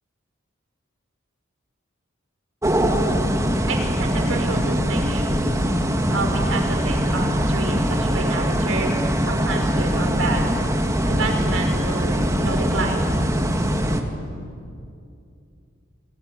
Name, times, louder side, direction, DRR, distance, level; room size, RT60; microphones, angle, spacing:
sound 1, 2.6-14.0, equal, 15° right, 2.0 m, -22 dB
voice 1, 3.7-5.3 6.1-10.8 11.0-13.2, right 3 dB, 90° right, 3 dB, 5.5 m, -30 dB
28.5 x 21.0 x 9.9 m, 2.5 s
head